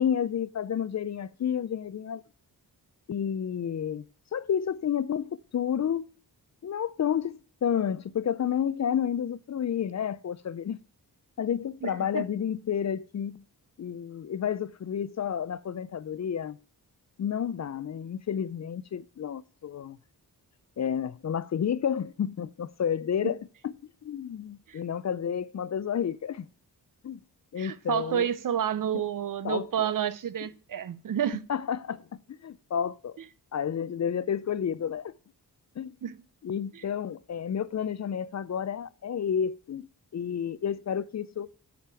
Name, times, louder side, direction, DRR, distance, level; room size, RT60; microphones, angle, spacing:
voice 1, 0.0-2.2 3.1-4.0 4.3-6.1 6.6-10.8 11.4-13.4 13.8-16.6 17.2-20.0 20.8-23.4 23.6-23.7 24.0-26.5 27.0-27.2 27.5-28.3 29.4-29.9 31.5-33.2 33.5-35.1 35.8-35.9 36.4-39.9 40.1-41.5, left 8 dB, 45° left, 0.4 m, -30 dB
voice 2, 11.8-12.2 23.2-23.3 24.7-24.8 27.6-31.4 36.0-36.2 36.7-36.9, right 9 dB, 60° right, 0.6 m, -30 dB
7.7 x 5.1 x 6.8 m
wide cardioid pair, 135°, 38 cm